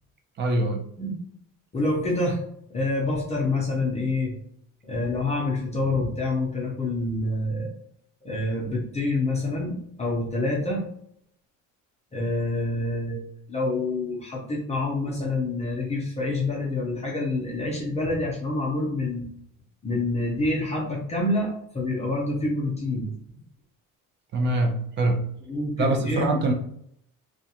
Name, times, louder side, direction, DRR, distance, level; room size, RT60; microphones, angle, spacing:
voice 1, 0.4-0.8 24.3-25.2 25.8-26.5, right 2 dB, 35° right, 3 dB, 0.5 m, -24 dB
voice 2, 1.7-2.4 2.7-4.3 4.9-7.7 8.2-10.8 12.1-19.3 19.8-23.1 25.5-26.3, left 2 dB, 20° left, -2 dB, 0.6 m, -27 dB
2.4 x 2.2 x 2.8 m, 0.69 s
cardioid pair, 130°, 33 cm